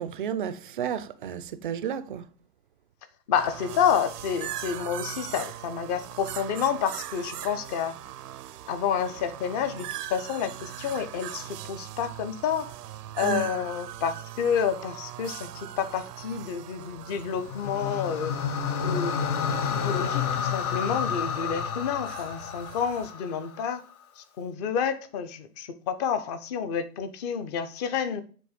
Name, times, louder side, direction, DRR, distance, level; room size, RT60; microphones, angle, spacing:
voice 1, 0.0-2.3 13.2-13.5, right 8 dB, 35° right, 0.4 m, -32 dB
voice 2, 3.3-8.0 8.7-12.7 13.1-18.3 18.8-19.2 19.6-23.8 24.2-28.2, left 7 dB, 25° left, 0.6 m, -29 dB
sound 1, 3.3-23.1, right 12 dB, 75° right, 0.6 m, -41 dB
sound 2, 17.3-23.6, left 6 dB, 65° left, 1.1 m, -30 dB
7.6 x 3.1 x 5.0 m
hypercardioid pair, 130°, 48 cm